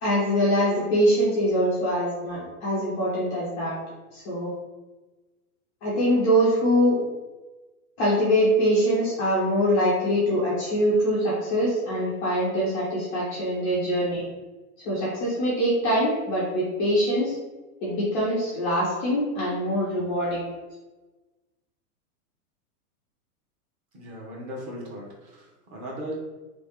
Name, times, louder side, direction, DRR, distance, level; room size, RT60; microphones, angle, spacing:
voice 1, 0.0-3.8 4.1-4.5 5.8-7.0 8.0-14.2 14.8-17.3 17.8-20.4, equal, 10° left, -11 dB, 0.3 m, -23 dB
voice 2, 23.9-26.1, equal, 35° right, -3 dB, 1.1 m, -37 dB
3.3 x 3.0 x 3.4 m, 1.2 s
supercardioid pair, 150°, 46 cm